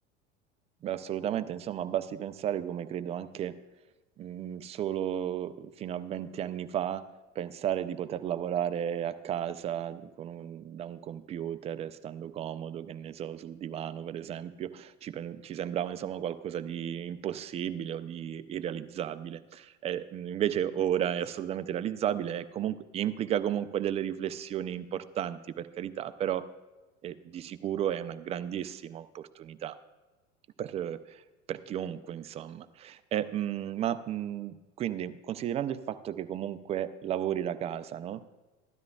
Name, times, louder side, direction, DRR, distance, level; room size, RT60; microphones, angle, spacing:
voice 1, 0.8-3.6 4.2-7.1 7.4-26.5 27.0-29.8 30.6-31.2 31.5-38.3, right 10 dB, 20° right, 12 dB, 0.3 m, -33 dB
15.0 x 12.5 x 2.3 m, 1.2 s
figure-of-eight pair, 80°, 38 cm